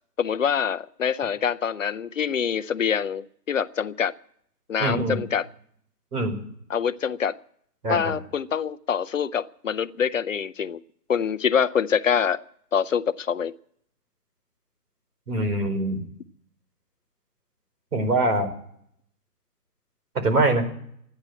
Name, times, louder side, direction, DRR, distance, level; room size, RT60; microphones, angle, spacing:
voice 1, 0.2-4.1 4.7-5.5 6.7-7.4 7.9-10.8 11.1-12.4 12.7-13.5, left 7 dB, 50° left, 14 dB, 0.6 m, -25 dB
voice 2, 4.8-5.2 6.1-6.4 7.8-8.1 15.3-16.0 17.9-18.5 20.2-20.7, right 2 dB, 70° right, 6 dB, 4.9 m, -23 dB
14.0 x 10.5 x 8.8 m, 0.67 s
hypercardioid pair, 155°, 49 cm